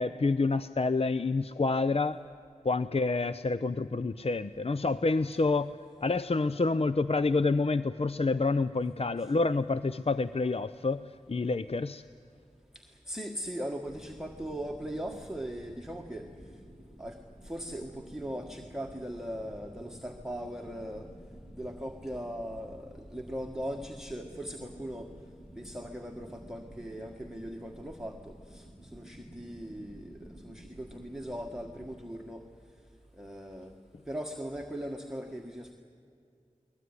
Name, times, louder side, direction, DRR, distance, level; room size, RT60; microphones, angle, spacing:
voice 1, 0.0-2.2 2.6-5.7 6.0-12.0, left 3 dB, 50° left, 13 dB, 0.5 m, -28 dB
voice 2, 13.1-16.3 17.0-17.2 17.4-21.1 21.5-25.1 25.6-28.6 28.9-32.4 33.2-33.7 34.1-35.7, equal, 5° right, 1 dB, 1.6 m, -39 dB
sound 1, 13.8-32.0, equal, 30° left, 4.7 m, -51 dB
22.0 x 20.0 x 9.8 m, 2.4 s
wide cardioid pair, 50°, 13 cm